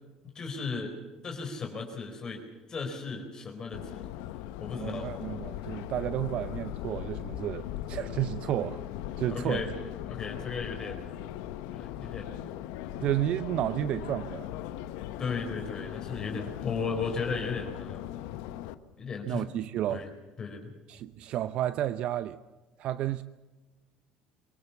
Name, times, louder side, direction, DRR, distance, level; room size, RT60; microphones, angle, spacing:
voice 1, 0.3-0.9 1.2-2.4 2.7-4.1 4.6-5.1 9.3-9.7 10.1-11.1 11.7-12.5 15.2-18.0 19.0-19.5 19.9-20.1 20.4-20.7, left 4 dB, 30° left, 4.2 m, -35 dB
Subway metro underground, 3.7-18.7, left 13 dB, 85° left, 1.1 m, -39 dB
voice 2, 4.7-8.8 9.2-9.6 13.0-14.5 19.3-20.0 20.9-22.4 22.8-23.2, right 12 dB, 55° right, 0.7 m, -31 dB
23.5 x 18.5 x 7.1 m
cardioid pair, 125°, 2 cm